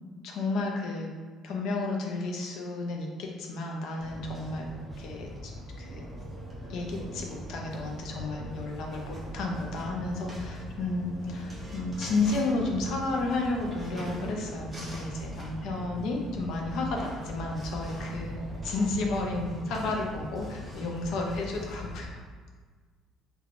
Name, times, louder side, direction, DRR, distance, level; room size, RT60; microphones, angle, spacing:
voice 1, 0.2-1.1 1.4-4.7 5.0-5.5 5.8-6.0 6.7-22.2, left 2 dB, 60° left, 1 dB, 0.4 m, -32 dB
sound 1, 4.0-22.1, equal, 10° right, 0.5 m, -40 dB
3.2 x 2.2 x 2.4 m, 1.5 s
cardioid pair, 175°, 0 cm